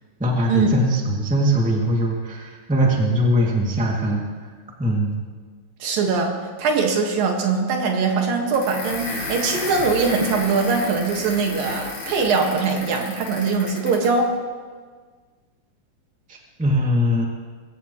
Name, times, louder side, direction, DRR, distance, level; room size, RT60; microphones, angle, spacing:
voice 1, 0.2-4.5 4.8-5.2 16.3-17.2, equal, 5° right, -2 dB, 1.3 m, -21 dB
voice 2, 5.8-14.3, right 4 dB, 75° right, 2 dB, 3.3 m, -22 dB
sound 1, 8.5-14.2, left 2 dB, 85° left, 5.4 m, -32 dB
22.5 x 16.0 x 3.1 m, 1.5 s
omnidirectional pair, 4.1 m